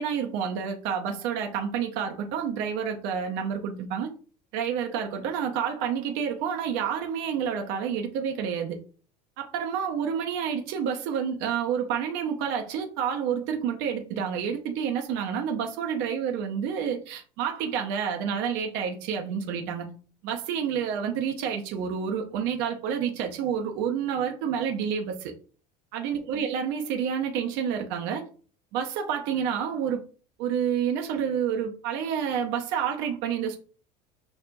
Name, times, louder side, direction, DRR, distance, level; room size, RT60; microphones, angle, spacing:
voice 1, 0.0-4.1 4.5-8.8 9.4-19.9 20.2-25.3 25.9-28.2 28.7-30.0 30.4-33.6, right 7 dB, 60° right, 3 dB, 0.6 m, -29 dB
5.9 x 2.1 x 2.5 m, 0.40 s
hypercardioid pair, 70°, 21 cm